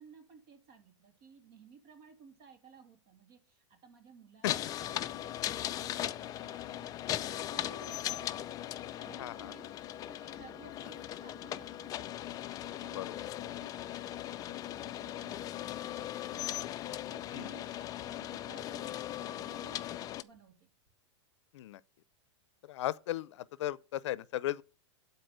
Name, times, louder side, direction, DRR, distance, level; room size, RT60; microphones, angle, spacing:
voice 1, 0.0-4.5 5.1-8.4 8.9-9.8 10.1-12.3 12.6-17.7 18.0-19.9 20.2-20.7, right 5 dB, 50° right, 2.9 m, -57 dB
sound 1, 4.4-20.2, left 12 dB, 25° left, 0.4 m, -39 dB
voice 2, 9.2-9.5 13.0-13.1 17.3-17.5 21.5-21.8 22.6-24.6, left 14 dB, 70° left, 0.6 m, -36 dB
11.5 x 4.3 x 6.7 m
supercardioid pair, 140°, 16 cm